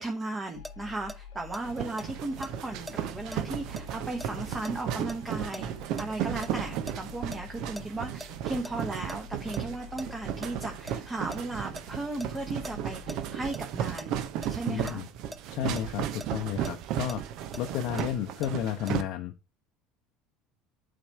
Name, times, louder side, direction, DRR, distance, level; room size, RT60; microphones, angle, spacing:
voice 1, 0.0-14.1 14.5-15.0, right 2 dB, 20° right, 1.1 m, -36 dB
sound 1, 0.5-14.7, left 7 dB, 80° left, 1.0 m, -49 dB
sound 2, 0.6-6.5 6.9-9.2 9.5-9.6 10.0-10.5 10.9-14.1 14.4-14.6 14.9-15.0 15.3-15.4 15.8-18.5 18.9-19.0, equal, ahead, 0.5 m, -43 dB
sound 3, 1.6-19.0, right 10 dB, 55° right, 0.6 m, -35 dB
voice 2, 14.6-15.1 15.5-17.2 17.6-19.3, left 10 dB, 55° left, 0.7 m, -32 dB
8.6 x 3.4 x 4.4 m
hypercardioid pair, 70°, 0 cm